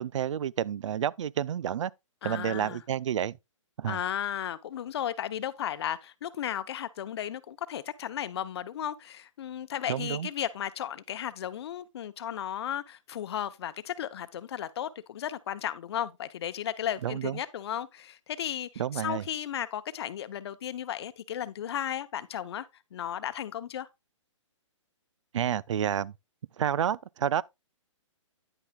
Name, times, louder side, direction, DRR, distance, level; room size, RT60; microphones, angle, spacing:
voice 1, 0.0-1.9 2.2-3.4 3.8-4.0 9.9-10.3 17.0-17.4 18.8-19.2 25.3-26.1 26.6-27.4, right 9 dB, 65° right, 0.4 m, -29 dB
voice 2, 2.2-2.8 3.8-23.9, left 10 dB, 50° left, 0.8 m, -35 dB
10.0 x 8.8 x 2.3 m
hypercardioid pair, 145°, 17 cm